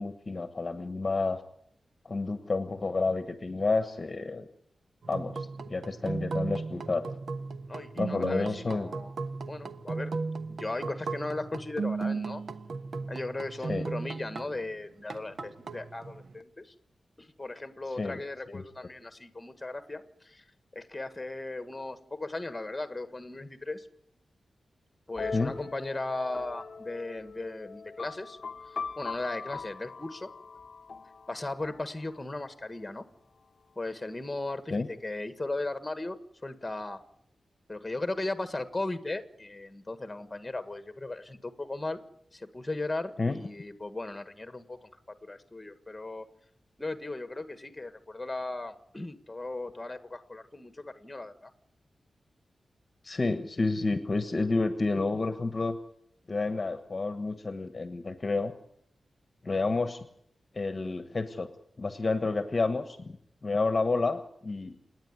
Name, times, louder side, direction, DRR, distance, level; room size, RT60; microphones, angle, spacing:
voice 1, 0.0-1.4 2.0-4.5 5.1-7.1 8.0-8.9 13.7-13.8 18.0-18.2 18.5-18.6 25.3-25.5 34.7-34.9 43.2-43.4 53.0-55.8 56.3-58.5 59.4-60.1 60.5-61.5 61.8-63.1 63.4-64.8, left 3 dB, 30° left, 9 dB, 1.2 m, -30 dB
sound 1, 5.0-14.7 15.1-16.4, right 4 dB, 65° right, 1.2 m, -36 dB
voice 2, 7.7-9.1 9.5-10.1 10.6-12.4 13.1-16.7 17.2-20.4 20.7-23.9 25.1-28.4 28.7-30.3 31.3-33.0 33.7-36.2 36.4-37.0 37.7-42.0 42.3-44.9 45.2-46.3 46.8-51.5, left 2 dB, 15° left, 10 dB, 1.6 m, -37 dB
sound 2, 25.2-32.7, left 5 dB, 50° left, 0.7 m, -41 dB
28.5 x 9.7 x 9.6 m, 0.71 s
wide cardioid pair, 135°, 0 cm